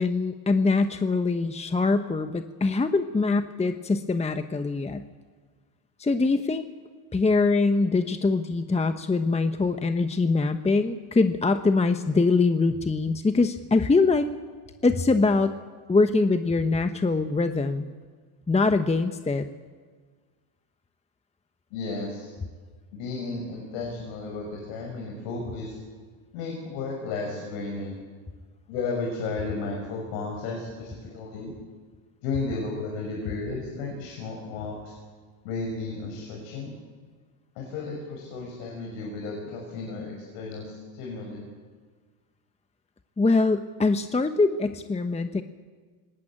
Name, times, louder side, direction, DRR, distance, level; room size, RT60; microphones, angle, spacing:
voice 1, 0.0-5.0 6.0-6.6 7.1-14.3 14.8-15.5 15.9-17.9 18.5-19.5 43.2-45.4, left 3 dB, 15° left, 8 dB, 1.0 m, -23 dB
voice 2, 21.7-22.3 22.9-25.8 26.3-28.0 28.7-31.5 32.2-34.9 35.4-36.7 37.5-41.5, left 3 dB, 85° left, 0 dB, 6.1 m, -33 dB
24.5 x 19.5 x 8.8 m, 1.5 s
supercardioid pair, 105°, 50 cm